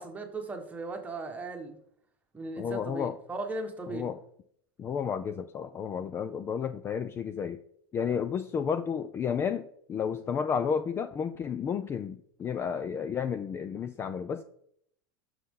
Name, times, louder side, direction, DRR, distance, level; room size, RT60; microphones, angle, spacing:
voice 1, 0.0-1.8 2.3-4.1, right 2 dB, 10° right, 1.4 m, -37 dB
voice 2, 2.6-3.2 3.9-4.2 4.8-7.6 7.9-14.4, left 7 dB, 20° left, 0.4 m, -32 dB
11.0 x 6.4 x 3.8 m
supercardioid pair, 140°, 12 cm